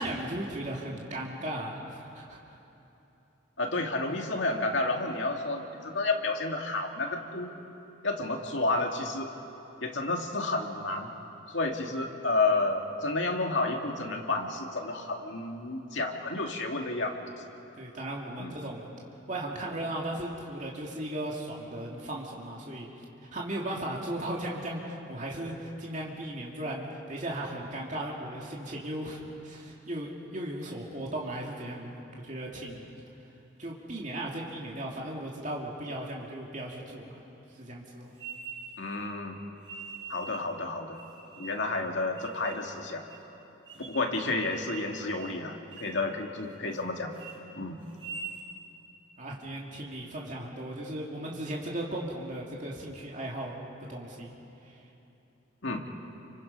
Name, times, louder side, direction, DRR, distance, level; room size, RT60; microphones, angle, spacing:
voice 1, 0.0-2.6 17.8-18.9 19.3-22.9 23.3-31.9 32.2-32.9 33.6-37.1 37.5-38.1 43.7-43.9 49.2-53.5 53.9-54.3 54.6-54.8, right 1 dB, 40° right, -2 dB, 2.4 m, -36 dB
voice 2, 3.6-7.5 8.0-9.3 9.8-11.1 11.5-17.3 18.4-18.5 38.8-39.4 40.1-41.0 41.4-43.0 43.9-47.1 47.6-47.8 55.6-55.8, left 2 dB, 70° left, 2 dB, 2.2 m, -31 dB
sound 1, 38.2-39.0 39.6-40.5 40.9-41.7 42.2-42.7 43.1-43.2 43.7-44.1 44.4-44.9 45.2-45.4 45.7-46.0 46.4-46.8 47.1-47.4 47.9-48.5, right 5 dB, 75° right, 7.1 m, -43 dB
29.5 x 25.0 x 5.4 m, 3.0 s
head